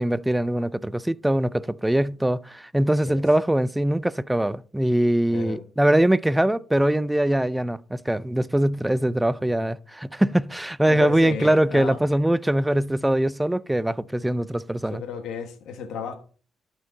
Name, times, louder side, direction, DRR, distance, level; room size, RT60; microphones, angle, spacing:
voice 1, 0.0-15.0, right 1 dB, 10° right, 0.4 m, -22 dB
voice 2, 5.3-5.6 10.9-12.0 14.9-16.2, left 6 dB, 80° left, 1.1 m, -33 dB
12.0 x 4.5 x 4.0 m
cardioid pair, 90°, 0 cm